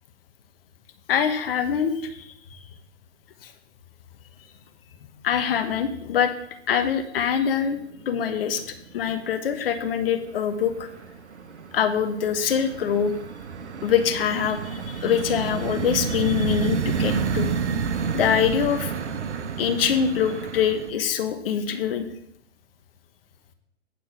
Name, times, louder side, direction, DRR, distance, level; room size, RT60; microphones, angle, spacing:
voice 1, 1.1-2.6 5.0-6.3 6.7-7.8 8.1-10.9 11.7-13.1 13.8-17.5 18.1-18.9 19.6-22.1, left 8 dB, 55° left, 8 dB, 1.2 m, -24 dB
sound 1, 7.8-8.4 8.7-9.4 9.8-20.9, right 6 dB, 80° right, 0.8 m, -30 dB
9.4 x 4.2 x 6.7 m, 0.74 s
figure-of-eight pair, 120°, 34 cm